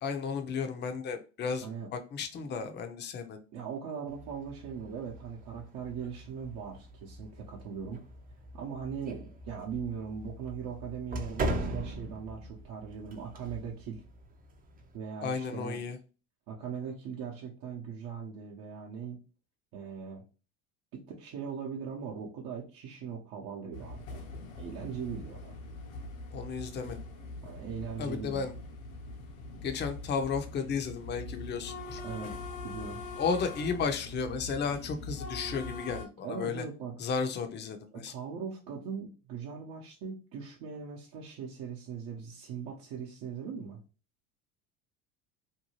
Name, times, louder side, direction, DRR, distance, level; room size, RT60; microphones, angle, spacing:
voice 1, 0.0-1.7 1.9-3.4 15.2-16.0 26.3-27.0 28.0-28.5 29.6-32.0 33.2-36.6 37.0-38.1, left 5 dB, 25° left, 7 dB, 0.5 m, -33 dB
voice 2, 3.5-8.0 8.5-14.0 14.9-15.8 16.5-19.2 19.7-20.2 20.9-24.3 24.6-25.5 27.4-28.5 32.0-33.0 36.2-36.9 37.9-43.8, right 6 dB, 60° right, -3 dB, 0.8 m, -40 dB
sound 1, 4.1-15.0, right 1 dB, 20° right, 0.5 m, -41 dB
sound 2, 23.7-36.1, left 2 dB, 70° left, 0.7 m, -42 dB
2.7 x 2.2 x 2.9 m, 0.34 s
hypercardioid pair, 80°, 41 cm